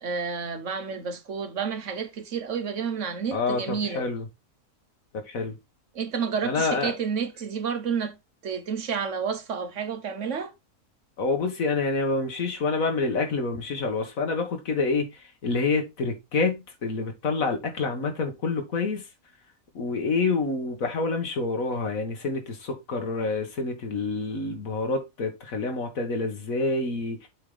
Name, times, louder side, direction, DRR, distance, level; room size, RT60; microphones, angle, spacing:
voice 1, 0.0-4.0 5.9-8.2 8.4-10.5, right 6 dB, 65° right, 1.4 m, -30 dB
voice 2, 3.3-4.3 5.3-5.6 6.4-6.9 11.2-19.0 19.8-27.3, left 3 dB, 80° left, 1.9 m, -27 dB
7.5 x 4.9 x 3.8 m
omnidirectional pair, 1.4 m